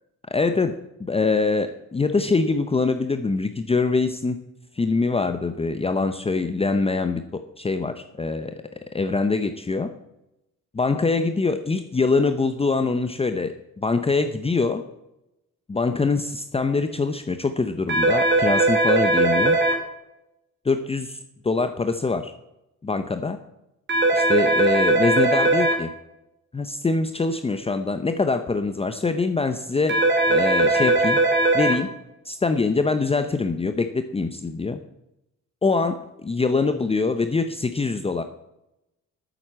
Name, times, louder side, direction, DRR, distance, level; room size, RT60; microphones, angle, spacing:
voice 1, 0.3-4.4 4.7-8.6 8.9-9.9 10.7-14.8 15.7-19.6 20.7-22.3 22.8-23.4 24.1-25.9 26.5-31.2 31.5-31.9 32.2-34.8 35.6-38.2, left 4 dB, 20° left, 9 dB, 0.7 m, -24 dB
sound 1, 17.9-19.7 23.9-25.7 29.9-31.7, right 2 dB, 35° right, 3.1 m, -19 dB
9.1 x 7.9 x 7.4 m, 0.89 s
cardioid pair, 90°, 30 cm